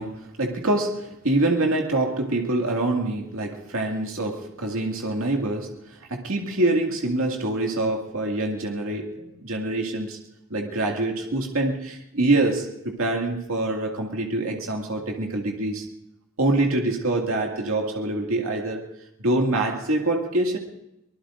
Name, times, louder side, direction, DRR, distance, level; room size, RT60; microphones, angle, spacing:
voice 1, 0.0-5.7 6.1-10.2 10.5-15.9 16.4-18.9 19.2-20.6, right 2 dB, 75° right, 1 dB, 2.2 m, -25 dB
24.5 x 20.0 x 2.6 m, 0.85 s
head